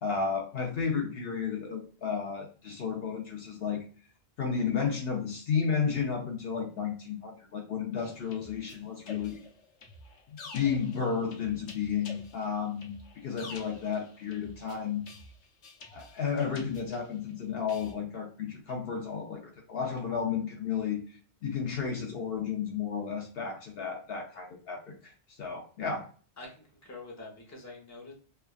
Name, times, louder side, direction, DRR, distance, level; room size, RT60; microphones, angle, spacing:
voice 1, 0.0-3.8 4.4-9.4 10.3-15.0 15.9-21.0 21.4-25.1 25.4-26.1, left 6 dB, 65° left, 1 dB, 0.8 m, -32 dB
sound 1, 8.0-17.3 17.7-17.9, left 3 dB, 90° left, 1.0 m, -49 dB
voice 2, 26.4-28.1, left 3 dB, 15° left, -2 dB, 0.7 m, -46 dB
3.3 x 2.3 x 2.3 m, 0.40 s
omnidirectional pair, 1.2 m